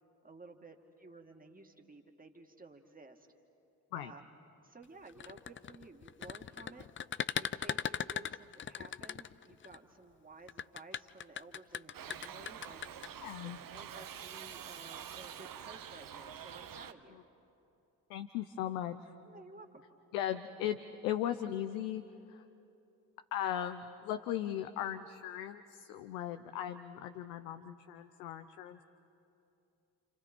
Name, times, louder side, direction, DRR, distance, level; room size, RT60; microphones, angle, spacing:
voice 1, 0.2-3.3 3.9-4.2 4.6-6.9 7.3-12.8 13.4-17.2 19.2-19.8, right 3 dB, 20° right, 3 dB, 2.3 m, -54 dB
sound 1, 5.1-9.8 10.5-13.1, left 8 dB, 25° left, 0.5 m, -38 dB
Shout / Livestock farm animals working animals, 11.9-16.9, right 9 dB, 45° right, 1.1 m, -47 dB
voice 2, 13.2-13.6 18.1-19.1 20.1-20.8 21.0-22.0 22.3-22.4 23.3-28.8, left 11 dB, 75° left, 9 dB, 0.8 m, -37 dB
29.5 x 28.5 x 4.5 m, 2.8 s
hypercardioid pair, 45°, 47 cm